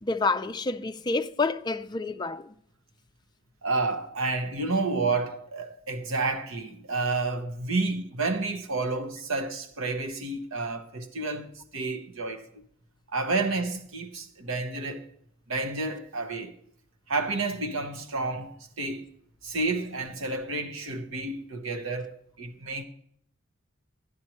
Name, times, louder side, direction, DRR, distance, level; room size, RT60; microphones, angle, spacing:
voice 1, 0.0-2.5, left 3 dB, 20° left, 0.4 m, -28 dB
voice 2, 3.6-12.6 13.1-15.1 15.5-16.5 17.1-19.1 19.4-22.8, right 3 dB, 70° right, 1.1 m, -30 dB
11.5 x 11.0 x 3.1 m
head